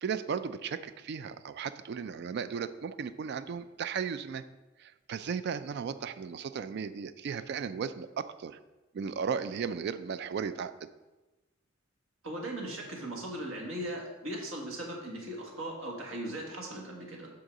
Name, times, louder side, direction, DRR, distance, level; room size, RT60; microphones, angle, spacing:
voice 1, 0.0-4.4 4.8-8.6 8.9-10.9, right 6 dB, 55° right, 13 dB, 0.3 m, -35 dB
voice 2, 12.2-17.3, right 1 dB, 80° right, 0 dB, 1.5 m, -38 dB
6.4 x 3.8 x 6.1 m, 1.1 s
head